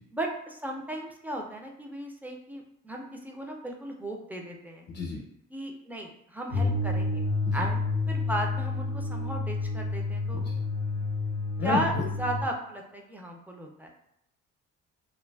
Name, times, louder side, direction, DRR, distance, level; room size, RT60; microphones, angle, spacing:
voice 1, 0.1-4.9 5.5-7.3 7.5-10.5 11.6-11.9 12.2-13.9, right 1 dB, 5° right, 1 dB, 0.4 m, -35 dB
voice 2, 4.9-5.2 7.4-7.7 10.3-10.4 11.6-12.0, left 3 dB, 55° left, -1 dB, 0.6 m, -31 dB
sound 1, 6.5-12.5, left 2 dB, 75° right, 1.1 m, -29 dB
2.5 x 2.4 x 2.2 m, 0.82 s
cardioid pair, 90°, 30 cm